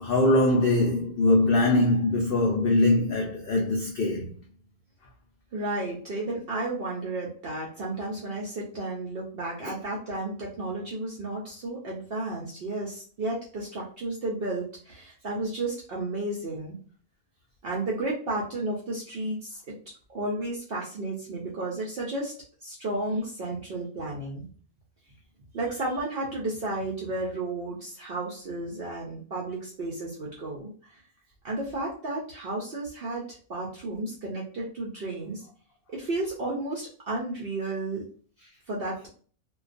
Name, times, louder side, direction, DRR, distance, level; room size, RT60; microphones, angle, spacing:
voice 1, 0.0-4.3 9.6-9.7, left 2 dB, 85° left, 0.5 m, -22 dB
voice 2, 5.5-16.8 17.6-19.6 20.1-22.3 22.6-24.4 25.5-30.7 31.4-35.4 35.9-38.0 38.7-39.1, right 2 dB, 65° right, 0.6 m, -32 dB
2.2 x 2.2 x 2.4 m
omnidirectional pair, 1.5 m